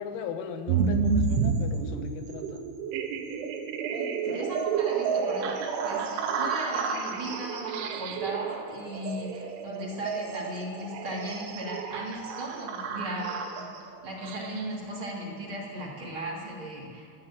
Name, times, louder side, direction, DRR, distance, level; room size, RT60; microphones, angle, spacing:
voice 1, 0.0-2.6, left 6 dB, 85° left, 7 dB, 3.5 m, -38 dB
sound 1, 0.7-14.8, right 5 dB, 90° right, 3.6 m, -30 dB
voice 2, 3.9-5.5 5.8-13.6 14.0-17.1, right 1 dB, 30° right, -4 dB, 3.1 m, -37 dB
14.5 x 12.0 x 7.6 m, 2.5 s
omnidirectional pair, 5.4 m